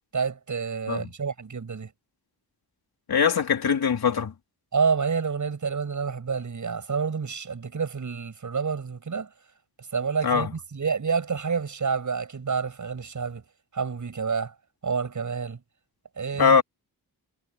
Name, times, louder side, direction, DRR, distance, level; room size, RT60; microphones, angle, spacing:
voice 1, 0.1-1.9 4.7-9.3 9.9-13.4 13.7-14.5 14.8-15.6 16.2-16.6, right 5 dB, 50° right, 7.5 m, -28 dB
voice 2, 3.1-4.3 10.2-10.5 16.4-16.6, left 6 dB, 70° left, 3.7 m, -21 dB
wide cardioid pair, 160°, 38 cm